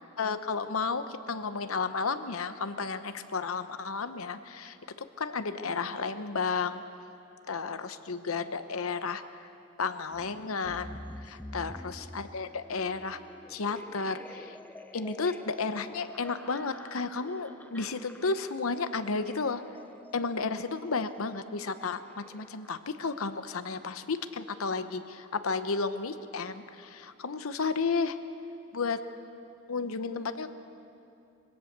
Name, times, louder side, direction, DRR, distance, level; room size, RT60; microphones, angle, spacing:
voice 1, 0.2-6.8 7.5-9.2 9.8-13.2 13.5-14.6 14.9-19.6 20.1-28.2 28.7-29.0 29.7-30.5, left 4 dB, 80° left, 10 dB, 0.9 m, -32 dB
sound 1, 10.1-22.7, left 1 dB, 10° left, 0.6 m, -48 dB
22.5 x 17.0 x 6.7 m, 2.8 s
head